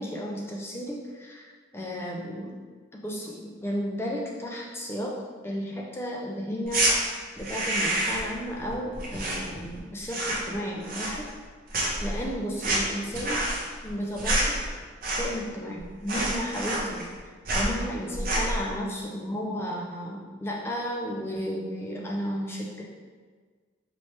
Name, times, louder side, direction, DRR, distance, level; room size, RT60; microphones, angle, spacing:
voice 1, 0.0-2.5 2.9-6.9 7.4-11.3 12.0-13.4 13.8-14.6 15.1-22.8, equal, 10° left, -2 dB, 0.4 m, -33 dB
sound 1, 6.6-6.9 7.4-8.3 8.6-9.8 10.0-10.5 10.8-11.5 11.7-15.5 15.8-15.9 16.1-17.2 17.4-17.7 18.1-18.6, right 1 dB, 45° right, 0.7 m, -28 dB
4.2 x 3.1 x 3.1 m, 1.5 s
head